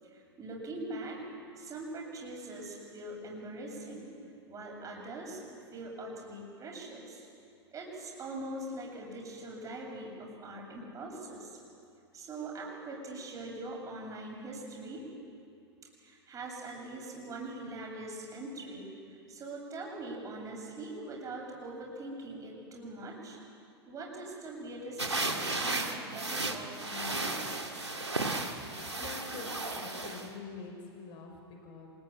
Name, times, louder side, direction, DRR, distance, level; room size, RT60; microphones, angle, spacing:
voice 1, 0.0-1.2 1.6-4.1 4.5-7.3 7.7-11.6 12.1-15.1 16.0-23.4 23.9-27.4 29.3-29.8, right 2 dB, 25° right, -1 dB, 7.7 m, -42 dB
sound 1, 25.0-30.3, right 2 dB, 85° right, 2.4 m, -34 dB
voice 2, 28.7-31.9, left 4 dB, 40° left, 1 dB, 5.9 m, -46 dB
26.5 x 21.5 x 9.1 m, 2.5 s
figure-of-eight pair, 95°, 14 cm